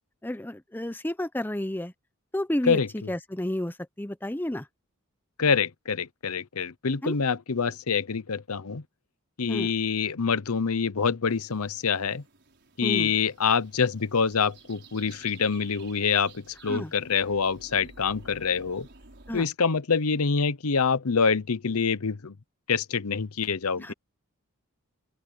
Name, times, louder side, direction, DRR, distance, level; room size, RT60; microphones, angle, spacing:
voice 1, 0.2-1.9 2.3-4.7 7.0-7.1 9.5-9.7 12.8-13.1 16.7-16.9 19.3-19.5 23.8-23.9, left 1 dB, 10° left, 0.8 m, -31 dB
voice 2, 5.4-8.8 9.4-12.2 12.8-18.9 19.3-22.4 22.7-23.9, left 5 dB, 80° left, 0.8 m, -26 dB
sound 1, 11.3-19.4, right 3 dB, 50° right, 5.1 m, -53 dB
open air
head